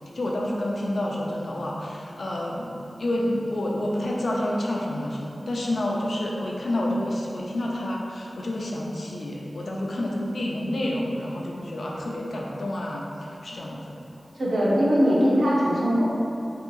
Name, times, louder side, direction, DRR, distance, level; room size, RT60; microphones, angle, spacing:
voice 1, 0.1-14.0, left 1 dB, 75° left, -2 dB, 0.4 m, -29 dB
voice 2, 14.4-16.0, equal, 85° right, -7 dB, 0.7 m, -21 dB
3.8 x 2.8 x 2.4 m, 2.8 s
wide cardioid pair, 60°, 0 cm